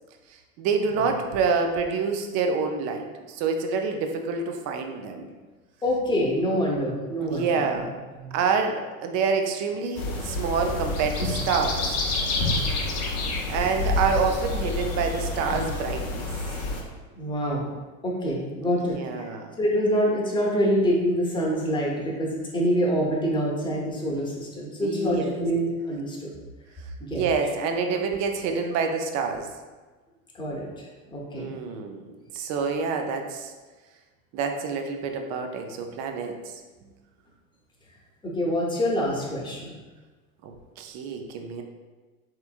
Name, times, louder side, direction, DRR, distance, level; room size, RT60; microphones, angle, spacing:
voice 1, 0.6-5.3 7.2-8.0 8.3-11.9 13.5-16.3 18.6-19.5 24.8-25.4 27.1-29.5 31.4-32.1 32.3-33.5 34.3-36.4 40.4-41.6, right 5 dB, 40° right, 5 dB, 0.5 m, -27 dB
voice 2, 5.8-7.8 8.2-8.4 17.2-17.7 18.0-19.3 19.6-26.3 27.0-27.2 30.3-31.5 38.2-39.8, equal, 10° left, -4 dB, 0.8 m, -26 dB
sound 1, 10.0-16.8, left 2 dB, 35° left, 0.7 m, -28 dB
3.3 x 2.9 x 2.4 m, 1.3 s
hypercardioid pair, 90°, 42 cm